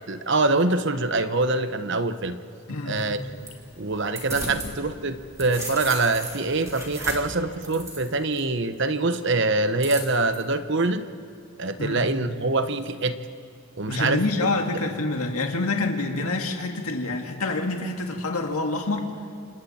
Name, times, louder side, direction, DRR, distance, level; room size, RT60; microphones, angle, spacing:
voice 1, 0.1-2.4 2.9-3.2 3.8-11.0 11.6-13.2 13.8-14.2, right 3 dB, 55° right, 10 dB, 1.1 m, -24 dB
voice 2, 2.7-3.1 4.5-4.7 11.8-12.1 13.9-19.1, left 2 dB, 90° left, 3 dB, 2.1 m, -27 dB
sound 1, 3.0-4.7 5.1-8.4 9.8-10.4, right 1 dB, 15° right, 3.7 m, -36 dB
28.0 x 28.0 x 4.4 m, 2.7 s
head